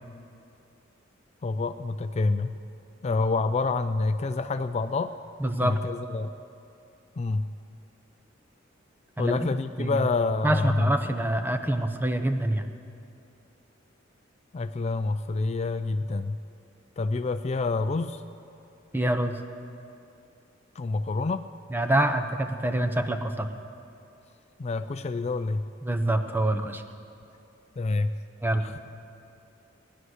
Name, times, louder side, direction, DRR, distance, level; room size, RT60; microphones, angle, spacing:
voice 1, 1.4-2.6 3.0-5.1 5.6-6.3 7.2-7.4 9.2-11.1 14.5-16.4 17.0-18.2 20.8-21.5 24.6-25.6 27.8-28.1 28.6-28.8, left 3 dB, 35° left, 10 dB, 0.4 m, -27 dB
voice 2, 5.4-5.8 9.2-9.5 9.8-10.1 10.4-12.7 18.9-19.4 21.7-23.5 25.8-26.8 28.4-28.8, right 1 dB, 10° right, 7 dB, 0.7 m, -26 dB
19.0 x 11.0 x 6.5 m, 2.7 s
head